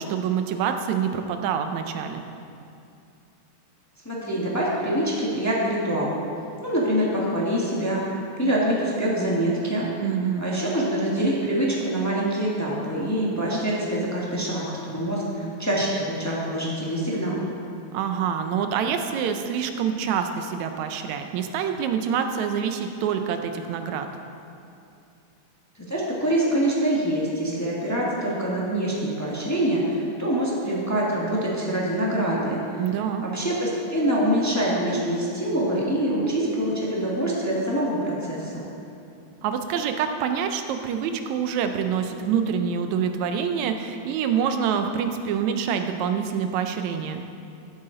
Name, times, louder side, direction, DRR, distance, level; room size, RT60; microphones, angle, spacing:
voice 1, 0.0-2.2 10.0-10.5 17.9-24.1 32.8-33.2 39.4-47.2, right 7 dB, 80° right, 7 dB, 1.9 m, -26 dB
voice 2, 4.0-6.1 6.6-9.9 10.4-17.4 25.8-32.6 33.2-38.6, right 1 dB, 20° left, -5 dB, 0.5 m, -25 dB
14.5 x 8.1 x 3.9 m, 2.6 s
omnidirectional pair, 3.3 m